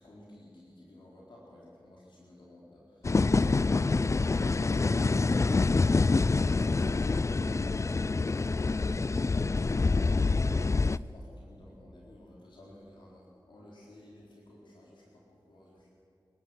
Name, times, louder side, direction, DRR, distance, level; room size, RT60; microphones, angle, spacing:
voice 1, 0.0-15.9, left 1 dB, 85° left, -4 dB, 4.2 m, -54 dB
sound 1, 3.0-11.0, left 3 dB, 40° left, 0.4 m, -26 dB
28.0 x 12.0 x 7.9 m, 2.6 s
cardioid pair, 55°, 8 cm